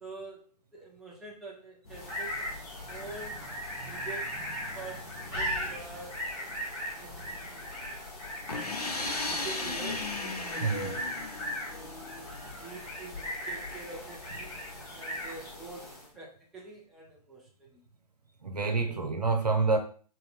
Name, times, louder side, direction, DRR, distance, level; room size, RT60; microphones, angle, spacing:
voice 1, 0.0-0.4 0.7-3.4 3.8-4.4 4.7-6.3 6.9-7.7 9.1-11.3 11.7-17.8 18.9-19.0, right 3 dB, ahead, -3 dB, 0.4 m, -46 dB
sound 1, 1.8-16.2, equal, 45° left, 2.0 m, -38 dB
sound 2, 8.5-12.2, left 3 dB, 75° left, 0.8 m, -35 dB
voice 2, 10.6-10.9 18.4-19.8, right 4 dB, 80° right, 5 dB, 0.8 m, -27 dB
4.1 x 2.6 x 4.0 m, 0.42 s
figure-of-eight pair, 120°, 20 cm